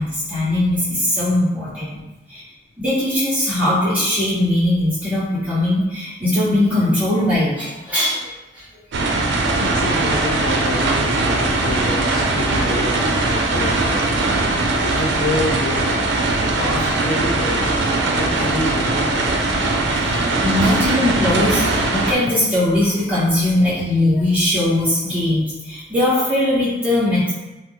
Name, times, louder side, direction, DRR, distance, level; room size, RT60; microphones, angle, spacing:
voice 1, 0.0-2.0 2.3-2.4 2.8-8.6 16.3-16.5 19.9-27.4, left 1 dB, 10° right, -13 dB, 1.3 m, -20 dB
sound 1, 8.9-22.1, right 2 dB, 85° right, 0.4 m, -20 dB
voice 2, 9.6-14.0 14.8-17.7 18.1-19.3, left 2 dB, 45° left, -3 dB, 0.3 m, -28 dB
2.9 x 2.1 x 3.4 m, 1.1 s
head